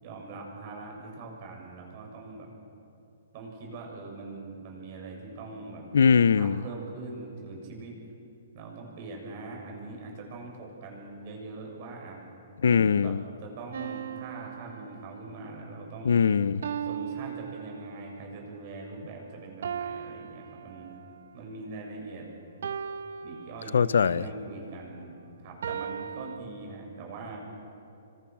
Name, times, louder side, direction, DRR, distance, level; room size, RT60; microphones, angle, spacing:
voice 1, 0.0-2.5 3.3-5.8 6.4-8.0 8.5-12.2 13.0-16.3 16.8-20.9 21.3-22.3 23.2-27.4, right 3 dB, 40° right, 7.4 m, -42 dB
voice 2, 5.9-6.6 12.6-13.2 16.0-16.6 23.7-24.2, left 6 dB, 85° left, 0.7 m, -21 dB
sound 1, 13.7-15.5 16.6-18.3 19.6-21.3 22.6-24.1 25.6-26.4, right 8 dB, 75° right, 1.1 m, -38 dB
27.5 x 25.0 x 6.3 m
hypercardioid pair, 155°, 0 cm